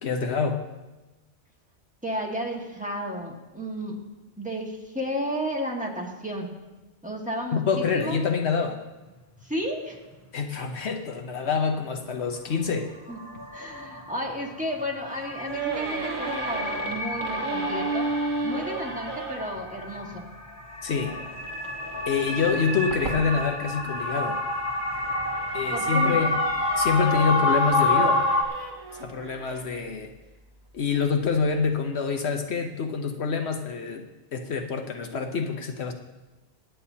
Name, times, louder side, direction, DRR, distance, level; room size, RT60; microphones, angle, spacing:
voice 1, 0.0-0.6 7.5-8.8 10.3-12.9 20.8-21.2 22.1-24.4 25.5-26.3 26.7-28.2 28.9-30.1 30.7-34.1 34.3-35.9, left 5 dB, 70° left, 5 dB, 1.1 m, -26 dB
voice 2, 2.0-3.9 4.4-6.5 7.0-8.2 9.4-10.0 13.1-13.2 13.5-18.1 18.4-20.3 25.7-26.2, equal, 5° right, -1 dB, 1.7 m, -32 dB
sound 1, 9.4-9.5 12.6-12.7 13.1-28.4, left 2 dB, 15° left, 1.0 m, -29 dB
sound 2, 15.5-19.6 21.0-24.2 24.8-29.8, right 4 dB, 50° right, 1.3 m, -35 dB
22.5 x 9.2 x 2.8 m, 1.1 s
omnidirectional pair, 1.2 m